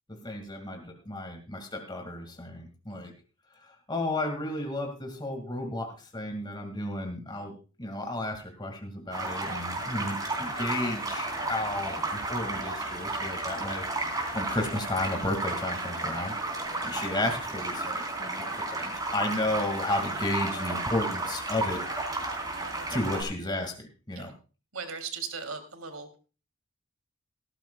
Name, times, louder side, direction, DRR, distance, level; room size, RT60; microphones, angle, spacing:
voice 1, 0.1-3.1 3.9-13.9 14.3-16.3 16.8-21.8 22.9-24.3, left 1 dB, 20° left, 4 dB, 2.1 m, -33 dB
sound 1, 9.1-23.2, right 2 dB, 20° right, 3.8 m, -33 dB
voice 2, 16.6-16.9 22.5-23.2 24.2-24.3 24.7-26.2, right 5 dB, 90° right, 7 dB, 2.8 m, -40 dB
18.0 x 14.0 x 2.3 m, 0.34 s
head